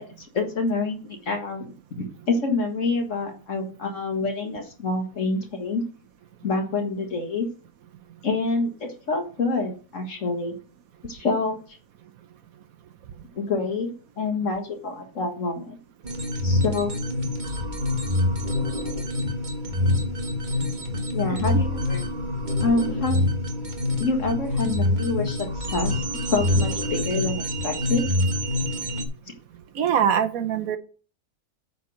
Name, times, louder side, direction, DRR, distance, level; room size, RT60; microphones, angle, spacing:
voice 1, 0.0-1.7 2.0-5.8 6.4-7.5 8.2-10.6 11.1-11.6 13.3-15.8 16.4-16.9 21.1-22.0 22.6-23.2 24.0-28.1, left 3 dB, 55° left, 3 dB, 2.1 m, -27 dB
sound 1, 16.0-29.1, left 1 dB, 30° right, 1.3 m, -26 dB
voice 2, 21.3-21.6 29.7-30.8, right 8 dB, 70° right, 9 dB, 1.2 m, -23 dB
9.5 x 4.3 x 6.2 m, 0.38 s
omnidirectional pair, 1.6 m